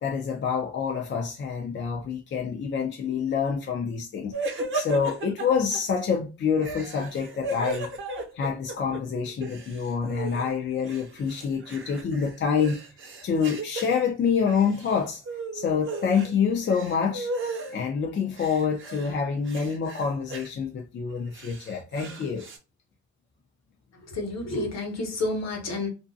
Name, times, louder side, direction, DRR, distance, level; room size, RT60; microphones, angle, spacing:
voice 1, 0.0-7.9 8.3-12.8 13.2-15.2 15.5-17.3 17.7-22.5, left 6 dB, 40° left, 0.5 m, -27 dB
sound 1, 4.3-5.8 6.6-9.0 9.3-10.5 10.9-14.0 14.4-15.0 15.2-16.3 16.6-17.8 18.3-19.1 19.4-20.5 21.1-22.6, right 2 dB, 40° right, 0.8 m, -35 dB
voice 2, 24.0-25.9, left 2 dB, 60° left, 1.1 m, -30 dB
2.6 x 2.2 x 2.5 m
cardioid pair, 90°, 30 cm